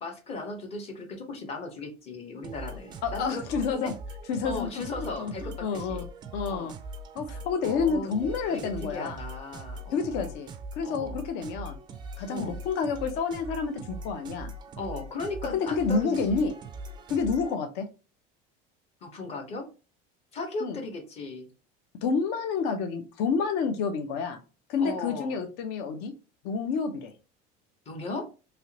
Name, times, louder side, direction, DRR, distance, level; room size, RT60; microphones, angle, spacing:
voice 1, 0.0-3.9 4.4-6.0 6.5-6.7 7.6-10.4 10.8-11.2 12.3-12.6 14.8-16.5 19.0-19.7 20.3-21.5 24.8-25.4 27.9-28.3, left 3 dB, 30° left, 3 dB, 0.9 m, -37 dB
sound 1, 2.4-17.6, right 1 dB, 25° right, 0.4 m, -41 dB
voice 2, 3.0-3.9 4.3-4.7 5.0-6.1 6.3-6.7 7.1-9.2 9.9-11.8 12.2-14.5 15.5-16.5 17.1-17.9 20.6-20.8 22.0-24.4 24.7-26.1 26.4-27.1, left 5 dB, 60° left, 7 dB, 0.7 m, -29 dB
3.3 x 2.9 x 2.8 m, 0.33 s
cardioid pair, 160°, 19 cm